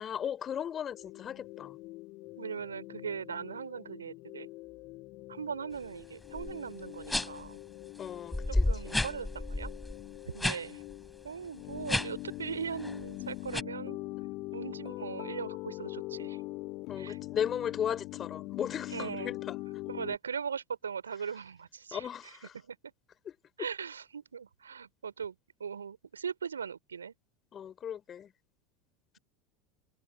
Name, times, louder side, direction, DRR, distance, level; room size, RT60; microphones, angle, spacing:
voice 1, 0.0-1.8 8.0-9.0 16.9-19.6 21.9-22.5 23.3-23.7 27.5-28.3, left 9 dB, 35° left, 3.3 m, -36 dB
sound 1, 0.9-20.2, left 21 dB, 50° left, 2.4 m, -43 dB
voice 2, 2.3-4.5 5.3-7.6 8.5-9.7 10.3-10.8 11.2-14.0 14.5-16.4 17.0-17.2 18.9-19.3 19.9-22.1 22.5-22.8 23.6-25.3 25.6-27.1, right 6 dB, 80° right, 4.2 m, -39 dB
sound 2, 6.3-6.5 7.1-7.5 8.0-8.1 8.3-10.6 10.9-11.1 11.8-12.3 12.7-13.0 13.5-13.6, left 1 dB, 5° left, 3.4 m, -31 dB
figure-of-eight pair, 75°, 0 cm